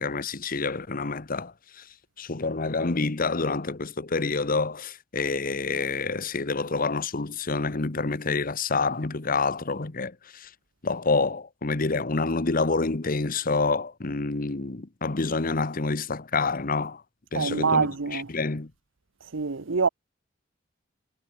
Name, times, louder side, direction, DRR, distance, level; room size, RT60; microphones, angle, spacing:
voice 1, 0.0-1.8 2.2-10.5 10.8-17.0 17.3-18.7, left 3 dB, 45° left, 1.1 m, -28 dB
voice 2, 17.3-18.3 19.3-19.9, right 4 dB, 90° right, 0.9 m, -25 dB
head